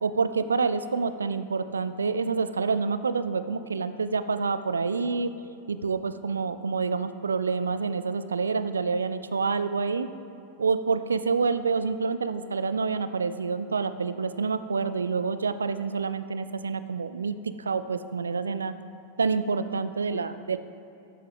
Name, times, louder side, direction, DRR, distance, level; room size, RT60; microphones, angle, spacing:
voice 1, 0.0-5.3 5.7-10.1 10.6-18.7 19.2-20.6, right 4 dB, 75° right, 12 dB, 0.3 m, -27 dB
13.0 x 6.6 x 3.5 m, 2.9 s
figure-of-eight pair, 90°, 0 cm